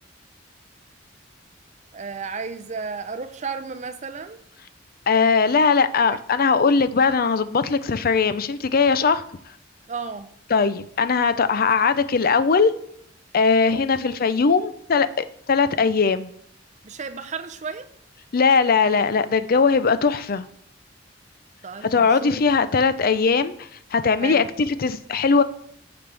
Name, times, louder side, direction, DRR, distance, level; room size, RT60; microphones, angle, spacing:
voice 1, 1.9-4.4 6.1-6.2 9.9-10.3 16.8-17.9 21.6-22.4 24.2-24.5, right 5 dB, 40° right, 0.6 m, -33 dB
voice 2, 5.1-9.2 10.5-12.7 13.3-16.3 18.3-20.5 21.9-25.4, left 5 dB, 50° left, 0.5 m, -20 dB
14.5 x 5.2 x 3.4 m
head